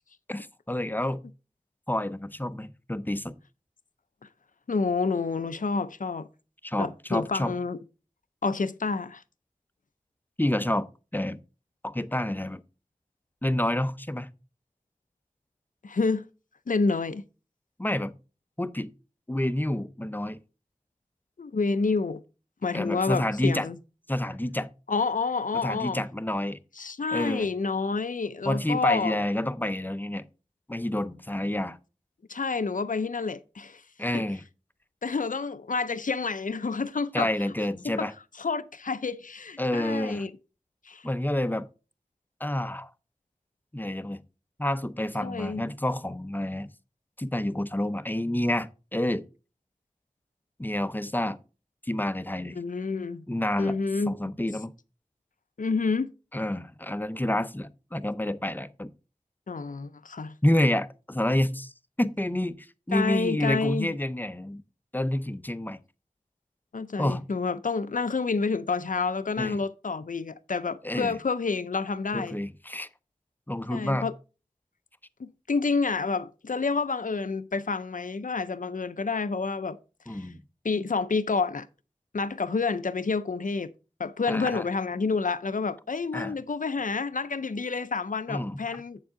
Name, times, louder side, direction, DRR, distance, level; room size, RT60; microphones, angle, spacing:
voice 1, 0.3-1.2 1.9-3.4 6.6-7.5 10.4-11.4 11.8-12.6 13.4-14.3 17.8-18.1 18.6-18.9 19.3-20.4 22.7-23.7 24.1-24.7 25.5-26.6 27.1-27.5 28.4-30.3 30.7-31.8 34.0-34.4 37.1-38.1 39.6-40.2 41.0-41.7 42.4-42.9 43.7-44.2 44.6-46.7 47.2-49.3 50.6-51.4 51.8-52.6 53.3-53.8 54.1-54.7 56.3-58.9 60.4-61.7 62.0-64.6 64.9-65.8 67.0-67.2 69.4-69.6 70.8-71.2 72.1-72.9 73.5-74.1 80.1-80.4 84.3-84.7 86.1-86.3 88.3-88.6, left 1 dB, 15° left, 0.6 m, -28 dB
voice 2, 4.7-6.3 6.8-7.8 8.4-9.2 15.8-16.2 16.7-17.2 21.4-22.2 22.6-23.8 24.9-26.0 26.8-29.2 32.3-33.8 34.1-34.2 35.0-37.3 37.8-38.1 38.4-40.3 40.9-41.0 45.2-45.6 52.5-53.2 53.6-54.2 55.6-56.1 59.5-60.3 62.9-63.9 66.7-72.4 73.7-74.1 75.2-79.8 80.1-80.3 80.6-81.7 82.1-83.7 84.0-89.0, left 4 dB, 75° left, 0.5 m, -29 dB
8.3 x 7.2 x 3.7 m
wide cardioid pair, 45°, 14 cm